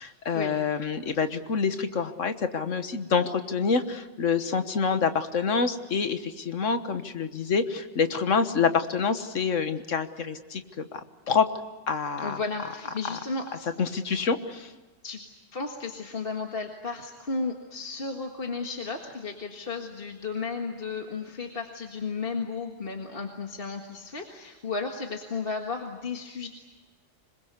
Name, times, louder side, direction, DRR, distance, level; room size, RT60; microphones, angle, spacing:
voice 1, 0.0-11.5 11.9-12.4 13.1-13.2 13.8-14.7, left 5 dB, 80° left, 9 dB, 1.7 m, -27 dB
voice 2, 12.2-13.7 15.0-15.2 15.5-26.5, left 4 dB, 50° left, 2 dB, 1.9 m, -34 dB
26.0 x 21.5 x 8.2 m, 1.3 s
omnidirectional pair, 1.3 m